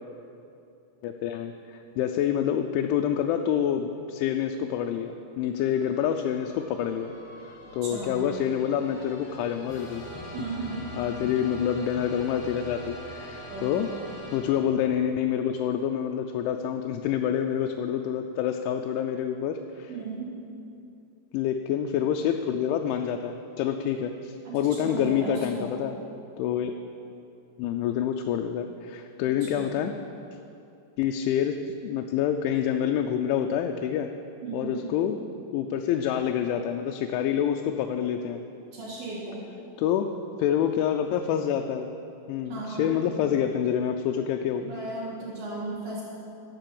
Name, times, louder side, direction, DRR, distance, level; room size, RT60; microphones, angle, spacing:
voice 1, 1.0-7.1 7.5-10.0 10.4-10.5 11.0-13.9 14.3-19.9 21.3-26.0 26.4-26.8 27.6-30.0 31.0-34.1 34.5-35.2 35.5-38.4 39.8-40.1 40.4-41.9 42.3-44.7, left 9 dB, 85° left, 4 dB, 3.0 m, -27 dB
sound 1, 5.5-15.0, left 1 dB, 40° left, 2.1 m, -43 dB
voice 2, 7.8-8.3 10.3-10.9 13.5-13.8 19.9-20.4 24.4-25.7 29.3-29.8 34.4-34.9 38.7-39.4 42.5-43.0 44.6-46.0, right 3 dB, 55° right, -8 dB, 3.0 m, -36 dB
12.0 x 8.9 x 7.6 m, 2.7 s
omnidirectional pair, 5.3 m